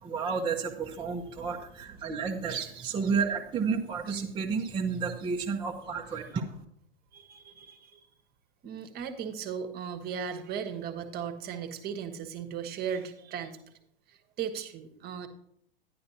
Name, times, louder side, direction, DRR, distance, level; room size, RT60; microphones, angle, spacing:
voice 1, 0.0-6.6, right 5 dB, 15° right, -1 dB, 0.9 m, -31 dB
voice 2, 7.1-8.1 8.6-13.6 14.1-15.3, right 7 dB, 35° right, 8 dB, 1.3 m, -37 dB
12.0 x 10.5 x 2.8 m, 0.70 s
figure-of-eight pair, 100°, 29 cm